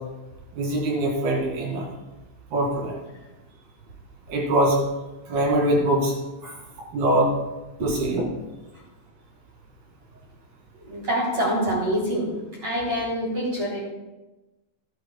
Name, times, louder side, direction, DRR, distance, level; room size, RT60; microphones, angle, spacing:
voice 1, 0.6-1.9 2.5-3.0 4.3-4.8 5.3-6.2 6.9-7.3 7.8-8.2, right 1 dB, 55° right, -2 dB, 4.0 m, -22 dB
voice 2, 10.8-12.3 12.6-13.8, equal, 35° right, -9 dB, 4.1 m, -26 dB
15.5 x 11.5 x 2.3 m, 1.1 s
omnidirectional pair, 5.8 m